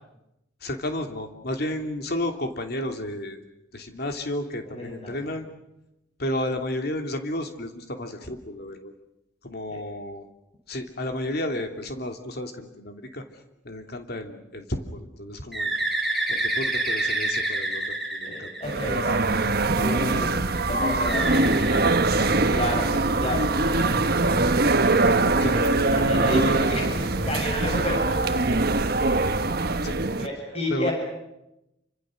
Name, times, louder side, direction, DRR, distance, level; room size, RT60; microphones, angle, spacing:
voice 1, 0.6-3.4 3.7-5.5 6.2-8.9 9.4-10.2 10.7-13.2 13.6-15.7 16.3-17.8 18.1-18.5 25.4-25.6 29.8-29.9 30.7-30.9, left 1 dB, 55° left, 5 dB, 2.9 m, -32 dB
voice 2, 4.7-5.1 9.7-9.8 18.2-23.9 24.8-28.4 30.2-30.9, left 1 dB, 35° left, 0 dB, 7.6 m, -31 dB
Bird, 15.5-19.3 21.0-22.8, right 2 dB, ahead, 5.0 m, -28 dB
sound 1, 18.6-30.3, right 2 dB, 55° right, 1.3 m, -23 dB
sound 2, 21.8-27.4, right 1 dB, 90° right, 2.2 m, -34 dB
28.0 x 26.0 x 6.5 m, 0.90 s
head